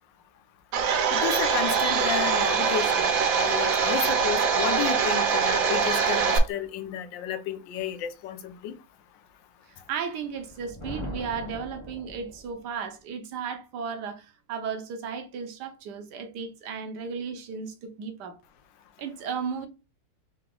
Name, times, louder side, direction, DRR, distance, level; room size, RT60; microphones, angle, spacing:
Domestic sounds home sounds, 0.7-6.4, right 6 dB, 85° right, 1.5 m, -23 dB
voice 1, 1.1-8.7, left 9 dB, 80° left, 1.3 m, -32 dB
voice 2, 9.7-18.4 19.0-19.7, right 6 dB, 70° right, 1.3 m, -35 dB
Thunder, 10.3-12.7, left 1 dB, 30° left, 0.5 m, -40 dB
3.8 x 2.9 x 3.7 m
omnidirectional pair, 2.0 m